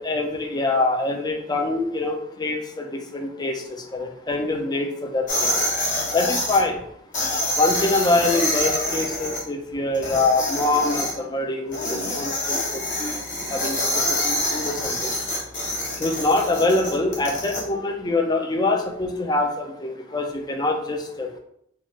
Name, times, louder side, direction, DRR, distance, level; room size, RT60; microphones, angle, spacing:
voice 1, 0.0-3.6 3.9-5.5 6.1-6.8 7.6-12.6 13.0-13.2 13.5-13.8 14.1-15.1 16.0-21.3, left 2 dB, 20° left, 3 dB, 0.4 m, -24 dB
sound 1, 5.3-6.6 7.1-9.4 9.9-11.1 11.7-17.6, left 1 dB, 40° left, 1.0 m, -26 dB
3.0 x 2.4 x 4.2 m, 0.70 s
head